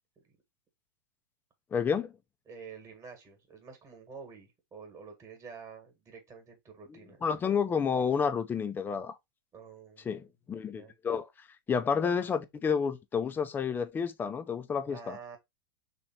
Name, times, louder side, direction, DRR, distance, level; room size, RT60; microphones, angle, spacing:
voice 1, 1.7-2.1 6.9-9.1 10.1-11.3 11.7-15.2, left 6 dB, 15° left, 0.4 m, -30 dB
voice 2, 2.4-7.2 9.5-10.2 10.7-10.9 14.9-15.4, right 5 dB, 20° right, 1.3 m, -48 dB
3.3 x 2.9 x 4.2 m
hypercardioid pair, 130°, 13 cm